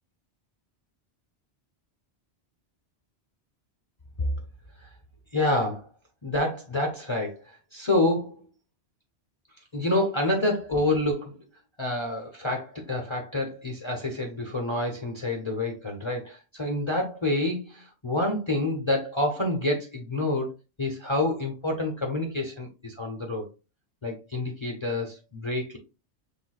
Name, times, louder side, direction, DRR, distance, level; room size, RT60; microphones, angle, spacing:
voice 1, 5.3-5.9 6.2-8.4 9.7-11.4 11.8-20.5 20.8-23.5 24.0-25.8, left 1 dB, 30° left, 0.8 m, -28 dB
5.9 x 3.6 x 2.3 m
omnidirectional pair, 1.1 m